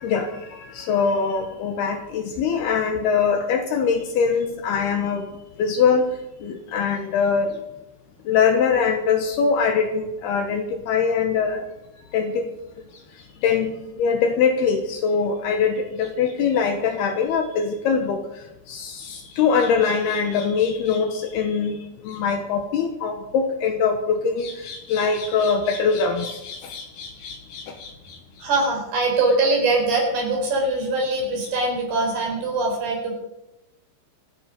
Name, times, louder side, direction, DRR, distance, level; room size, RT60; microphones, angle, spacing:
voice 1, 0.0-5.3 5.6-6.0 6.4-7.5 8.3-11.6 12.1-12.5 13.4-18.2 18.7-21.8 22.0-27.9, left 6 dB, 70° left, 6 dB, 2.8 m, -22 dB
voice 2, 28.4-33.1, right 2 dB, 55° right, 0 dB, 6.1 m, -22 dB
25.0 x 10.0 x 5.1 m, 0.89 s
omnidirectional pair, 5.4 m